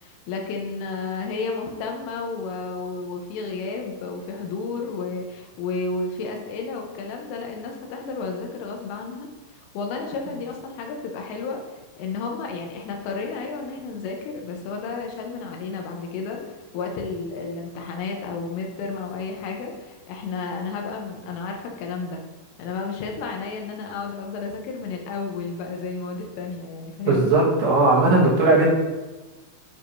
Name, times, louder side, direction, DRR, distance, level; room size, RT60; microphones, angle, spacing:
voice 1, 0.0-16.4 16.7-22.2 22.6-27.4, left 4 dB, 90° left, 2 dB, 3.4 m, -32 dB
voice 2, 27.1-28.7, right 2 dB, 70° right, -5 dB, 3.7 m, -18 dB
10.0 x 4.7 x 2.7 m, 1.2 s
omnidirectional pair, 5.8 m